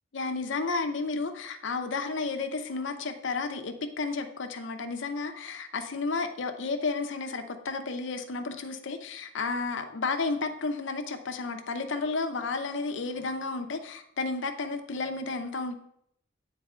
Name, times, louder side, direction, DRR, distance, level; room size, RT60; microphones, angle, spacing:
voice 1, 0.1-15.7, left 3 dB, 65° left, 6 dB, 0.6 m, -32 dB
8.2 x 4.0 x 3.6 m, 0.72 s
head